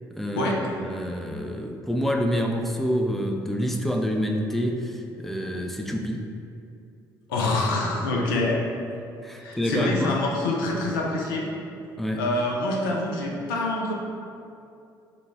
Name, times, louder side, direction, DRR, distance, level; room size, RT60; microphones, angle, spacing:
voice 1, 0.1-6.3 9.2-10.2 12.0-12.2, equal, ahead, 3 dB, 0.4 m, -27 dB
voice 2, 7.3-8.6 9.4-11.5 12.2-13.9, left 2 dB, 70° left, -1 dB, 0.5 m, -26 dB
4.8 x 2.3 x 3.5 m, 2.6 s
figure-of-eight pair, 50°, 12 cm